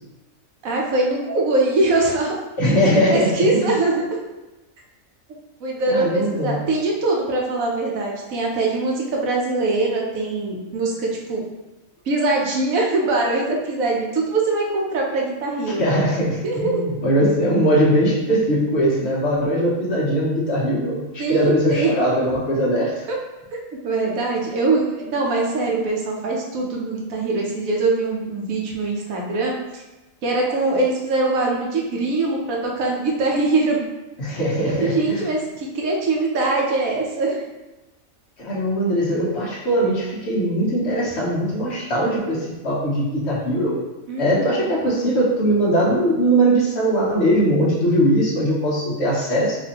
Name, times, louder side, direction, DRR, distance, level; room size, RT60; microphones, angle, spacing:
voice 1, 0.6-2.3 2.6-4.2 5.6-11.4 12.1-15.8 16.4-16.9 21.2-22.0 23.1-23.2 23.8-29.8 30.2-33.8 34.7-37.4 44.1-44.7, right 2 dB, 80° right, -1 dB, 1.2 m, -22 dB
voice 2, 2.6-3.7 5.9-6.6 15.8-23.0 34.2-35.2 38.4-43.8 44.2-49.6, equal, 55° left, -5 dB, 1.1 m, -20 dB
4.1 x 2.6 x 2.9 m, 1.0 s
omnidirectional pair, 1.4 m